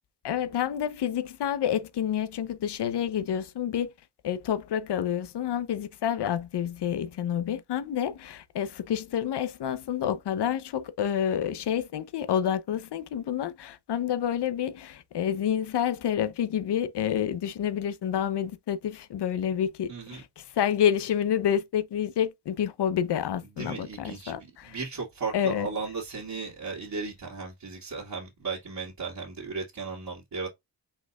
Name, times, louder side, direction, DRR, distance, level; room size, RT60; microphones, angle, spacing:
voice 1, 0.2-3.9 4.2-24.8 25.3-25.7, left 9 dB, 75° left, 0.8 m, -28 dB
voice 2, 19.9-20.2 23.6-30.5, right 4 dB, 55° right, 2.2 m, -36 dB
5.4 x 4.1 x 2.4 m
cardioid pair, 70°, 41 cm